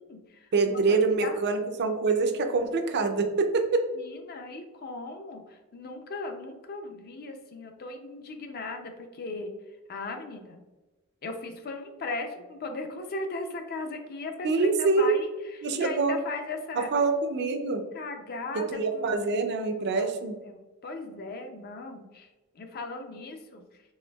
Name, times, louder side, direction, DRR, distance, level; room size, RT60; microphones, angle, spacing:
voice 1, 0.0-1.4 3.9-9.5 9.9-10.6 11.2-16.9 17.9-19.4 20.0-20.1 20.4-22.3 22.5-23.6, left 3 dB, 45° left, 5 dB, 0.4 m, -38 dB
voice 2, 0.5-3.9 14.4-15.2 15.6-16.2 16.8-17.8 18.5-20.4, right 4 dB, 50° right, 6 dB, 0.4 m, -25 dB
4.2 x 3.2 x 2.3 m, 1.2 s
head